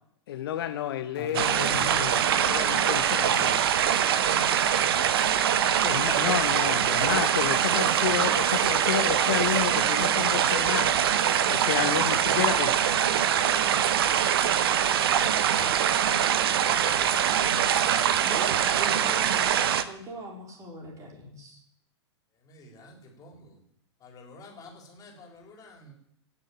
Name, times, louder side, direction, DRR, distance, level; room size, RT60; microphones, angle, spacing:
voice 1, 0.3-3.6 5.8-11.0 11.5-12.7, left 11 dB, 55° left, 8 dB, 1.1 m, -31 dB
sound 1, 1.1-10.2, left 5 dB, 70° left, 3.0 m, -48 dB
voice 2, 1.2-2.1 15.6-15.7 18.2-21.6, left 1 dB, 20° right, 0 dB, 4.1 m, -41 dB
sound 2, 1.3-19.8, right 9 dB, 55° right, 1.0 m, -23 dB
voice 3, 22.5-23.5 24.0-25.9, left 2 dB, 25° left, 1 dB, 3.9 m, -49 dB
17.0 x 7.0 x 8.7 m, 0.71 s
figure-of-eight pair, 100°, 15 cm